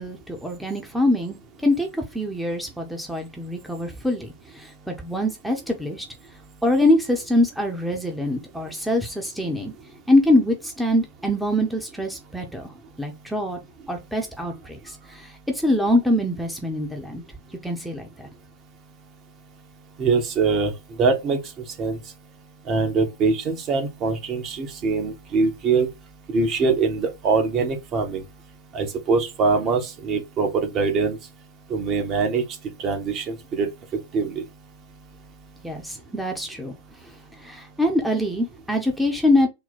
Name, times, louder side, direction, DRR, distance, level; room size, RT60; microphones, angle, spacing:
voice 1, 0.0-1.4 1.6-6.0 6.6-9.7 10.1-12.7 13.0-13.6 13.9-17.2 17.6-18.3 35.6-36.7 37.4-39.5, left 1 dB, ahead, 0.8 m, -24 dB
voice 2, 20.0-22.1 22.6-25.9 26.3-28.3 28.7-31.3 31.7-34.5 34.9-35.0, right 4 dB, 35° right, 1.0 m, -23 dB
3.9 x 2.2 x 4.2 m
figure-of-eight pair, 90°, 0 cm